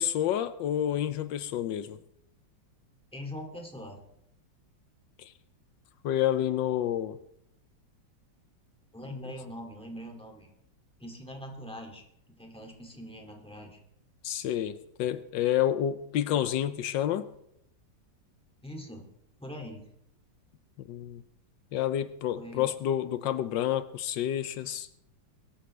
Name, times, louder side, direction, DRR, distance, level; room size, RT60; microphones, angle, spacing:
voice 1, 0.0-2.0 5.2-5.3 6.0-7.2 9.1-9.3 14.2-17.3 20.8-21.2 21.7-24.9, left 11 dB, 80° left, 12 dB, 1.4 m, -29 dB
voice 2, 3.1-4.0 8.9-10.5 11.0-12.0 12.4-13.8 18.6-19.0 19.4-19.8 22.3-22.7, equal, 5° left, 1 dB, 2.2 m, -42 dB
22.0 x 13.0 x 3.3 m, 0.77 s
omnidirectional pair, 2.0 m